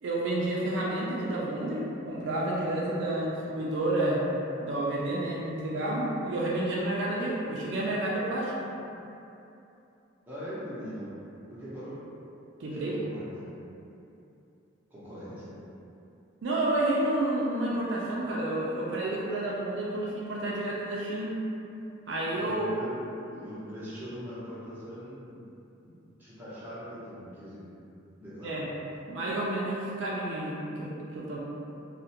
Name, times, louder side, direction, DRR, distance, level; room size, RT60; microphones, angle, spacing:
voice 1, 0.0-4.2 4.6-8.7 12.6-13.0 16.4-21.3 22.1-22.7 28.4-28.7 29.1-31.4, right 1 dB, 60° right, -5 dB, 0.3 m, -30 dB
voice 2, 10.3-11.1 11.5-12.0 12.8-13.3 14.9-15.5 22.3-23.0 23.3-25.5 25.7-27.7 28.2-28.6, equal, 10° right, -12 dB, 0.6 m, -41 dB
2.4 x 2.1 x 2.7 m, 2.8 s
head